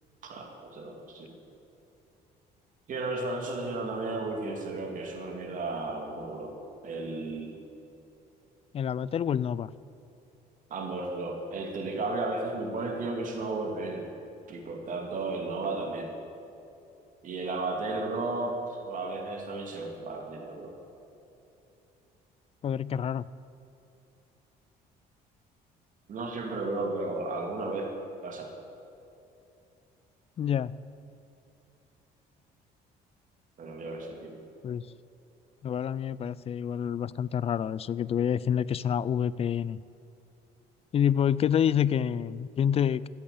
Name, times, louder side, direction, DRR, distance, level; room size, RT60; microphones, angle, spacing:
voice 1, 0.2-1.3 2.9-6.5 6.8-7.5 10.7-14.1 14.5-16.1 17.2-20.7 26.1-27.9 28.2-28.5 33.6-34.3, right 2 dB, 50° right, 1 dB, 2.8 m, -34 dB
voice 2, 8.7-9.7 22.6-23.2 30.4-30.7 34.6-34.8 35.6-39.8 40.9-43.1, left 9 dB, 35° left, 20 dB, 0.4 m, -27 dB
14.5 x 8.7 x 8.5 m, 2.8 s
cardioid pair, 110°, 17 cm